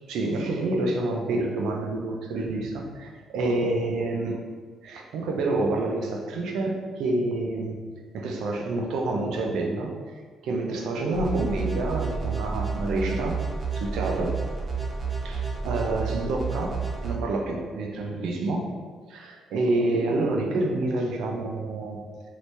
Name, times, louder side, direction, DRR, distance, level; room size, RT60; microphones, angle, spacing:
voice 1, 0.1-4.4 4.8-7.7 8.1-9.9 10.4-13.4 13.7-14.3 15.2-16.8 17.0-18.6 19.1-22.0, right 2 dB, 85° right, 1 dB, 0.5 m, -28 dB
sound 1, 11.1-17.1, right 5 dB, 45° right, 0.9 m, -30 dB
2.9 x 2.7 x 3.2 m, 1.5 s
cardioid pair, 90°, 0 cm